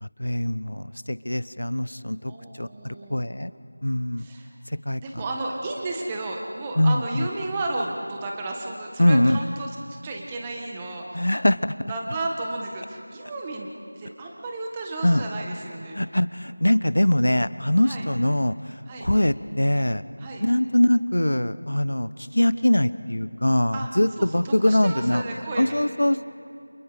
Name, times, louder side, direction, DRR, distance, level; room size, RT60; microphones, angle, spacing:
voice 1, 0.0-2.3 2.6-3.5 3.8-4.3 4.9-5.2 6.8-7.3 9.0-9.4 11.1-11.6 15.0-15.2 15.9-18.5 19.0-20.0 20.4-25.2 25.6-26.3, left 1 dB, 80° left, 15 dB, 1.0 m, -22 dB
voice 2, 2.3-3.2 4.2-4.5 5.0-9.7 10.0-11.3 11.9-13.7 14.0-16.0 17.8-18.1 18.9-19.1 20.2-20.4 23.7-23.9 24.2-25.7, right 2 dB, 10° right, 0 dB, 1.7 m, -33 dB
30.0 x 28.0 x 5.1 m, 2.6 s
figure-of-eight pair, 175°, 0 cm